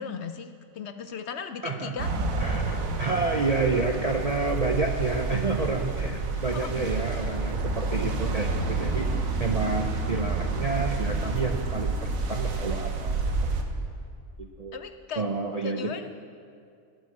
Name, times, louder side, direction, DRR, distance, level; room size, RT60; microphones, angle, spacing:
voice 1, 0.0-2.1 6.4-6.9 14.7-15.3 15.6-16.0, left 6 dB, 65° left, 9 dB, 0.7 m, -36 dB
voice 2, 1.6-2.0 2.4-9.1 9.4-13.2 13.4-13.6 14.4-14.8 15.2-16.0, right 3 dB, 45° right, 3 dB, 0.5 m, -29 dB
sound 1, 2.0-13.6, right 3 dB, 75° right, 1.5 m, -29 dB
12.0 x 7.8 x 8.5 m, 2.3 s
omnidirectional pair, 1.4 m